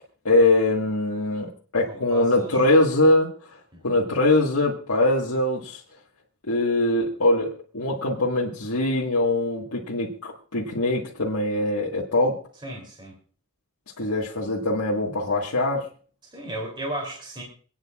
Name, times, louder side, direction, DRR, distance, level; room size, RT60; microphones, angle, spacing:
voice 1, 0.2-3.6 3.8-5.8 6.5-12.4 14.0-15.9, left 2 dB, 70° left, -4 dB, 1.7 m, -22 dB
voice 2, 1.9-2.7 3.7-4.0 12.6-13.1 16.3-17.4, right 1 dB, 20° right, -1 dB, 3.1 m, -35 dB
27.5 x 9.4 x 2.4 m, 0.42 s
head